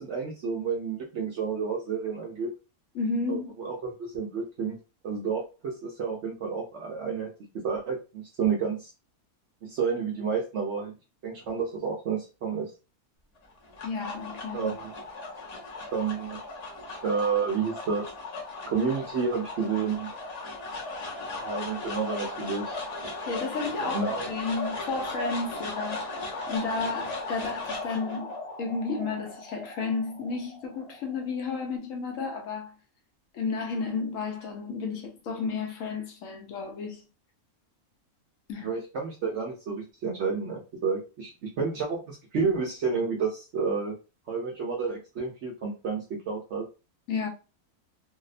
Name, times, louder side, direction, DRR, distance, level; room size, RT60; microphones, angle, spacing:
voice 1, 0.0-2.5 3.3-4.8 5.0-7.3 7.6-8.9 9.6-10.9 11.2-12.7 14.5-14.9 15.9-16.4 17.0-18.1 18.7-20.1 21.4-22.8 23.8-24.2 38.6-43.9 44.3-46.7, right 5 dB, 65° right, 0.7 m, -30 dB
voice 2, 2.9-3.5 13.8-14.7 23.3-26.2 26.5-32.7 33.3-37.0 38.5-38.7 47.1-47.3, left 4 dB, 70° left, 0.9 m, -32 dB
sound 1, 13.4-31.8, left 2 dB, 45° left, 0.5 m, -37 dB
2.7 x 2.0 x 2.4 m
omnidirectional pair, 1.6 m